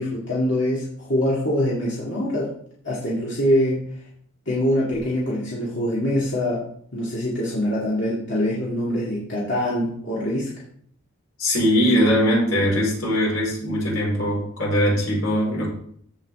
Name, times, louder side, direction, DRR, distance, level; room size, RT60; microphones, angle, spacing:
voice 1, 0.0-2.5 2.8-3.8 4.5-6.6 6.9-10.5, left 1 dB, 55° left, -7 dB, 2.3 m, -24 dB
voice 2, 11.4-15.7, equal, 80° left, -4 dB, 4.9 m, -21 dB
15.0 x 5.4 x 3.6 m, 0.62 s
head